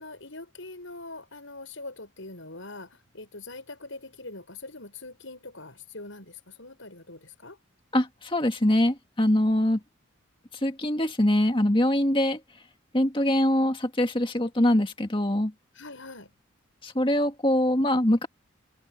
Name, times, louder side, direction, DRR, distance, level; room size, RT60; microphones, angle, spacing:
voice 1, 0.0-7.6 15.7-16.3, left 2 dB, 70° left, 6.9 m, -43 dB
voice 2, 7.9-9.8 10.6-12.4 12.9-15.5 16.8-18.3, left 1 dB, 25° left, 1.9 m, -23 dB
head